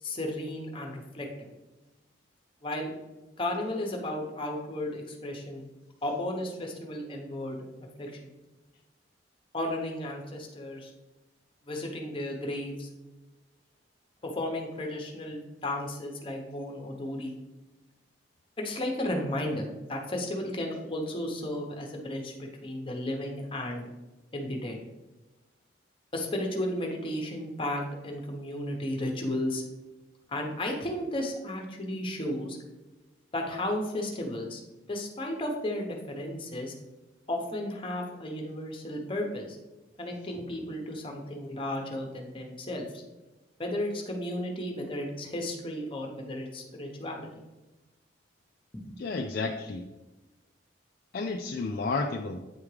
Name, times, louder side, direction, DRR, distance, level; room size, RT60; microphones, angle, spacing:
voice 1, 0.0-1.3 2.6-2.9 3.4-5.7 6.0-7.6 8.0-8.3 9.5-10.9 11.6-12.9 14.2-17.3 18.6-23.9 24.3-24.8 26.1-29.6 30.3-32.6 33.3-34.6 34.9-36.7 37.3-39.6 40.0-43.0 43.6-47.3 48.7-49.0, left 1 dB, 30° left, 1 dB, 0.9 m, -34 dB
voice 2, 49.0-49.8 51.1-52.4, left 3 dB, 50° left, 2 dB, 0.4 m, -31 dB
8.8 x 3.5 x 3.2 m, 1.1 s
head